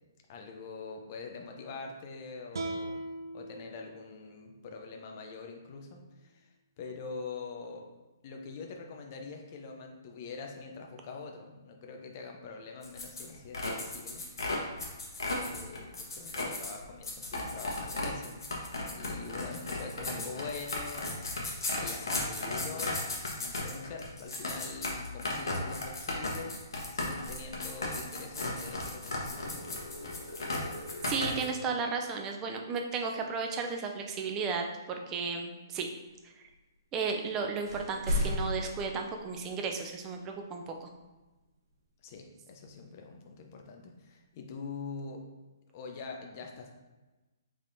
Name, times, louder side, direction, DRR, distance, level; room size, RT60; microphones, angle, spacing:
voice 1, 0.3-3.0 3.3-6.5 6.8-7.9 8.2-14.2 15.2-18.3 18.9-21.3 21.7-23.1 23.4-29.7 42.0-45.2 45.7-46.7, left 4 dB, 35° left, 2 dB, 0.6 m, -44 dB
sound 1, 2.5-5.7, right 2 dB, 85° right, 0.5 m, -41 dB
sound 2, 12.8-31.4, left 2 dB, 85° left, 1.1 m, -35 dB
voice 2, 31.1-34.6 35.1-35.9 36.9-40.9, right 5 dB, 20° right, 3 dB, 0.4 m, -34 dB
sound 3, 37.2-37.4 37.6-39.7, left 1 dB, 70° right, 1.3 m, -34 dB
5.2 x 3.5 x 2.7 m, 1.1 s
hypercardioid pair, 160°, 2 cm